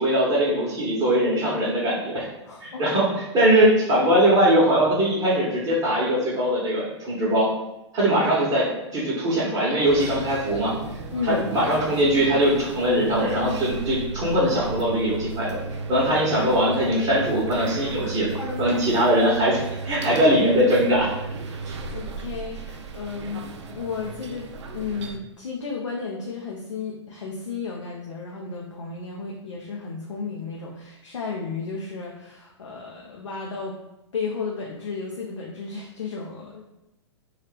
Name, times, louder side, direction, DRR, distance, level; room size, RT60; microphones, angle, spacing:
voice 1, 0.0-2.3 2.6-3.1 3.3-7.5 7.9-10.7 11.2-15.6 15.9-18.3 18.6-21.1 21.6-21.8, equal, 25° right, -7 dB, 1.0 m, -21 dB
voice 2, 2.5-2.9 11.1-11.5 18.0-19.0 21.9-23.4 23.7-33.8 34.1-36.6, left 4 dB, 85° left, -2 dB, 0.5 m, -33 dB
sound 1, 9.9-25.2, right 4 dB, 70° right, 0.4 m, -35 dB
2.9 x 2.3 x 3.2 m, 0.93 s
hypercardioid pair, 115°, 15 cm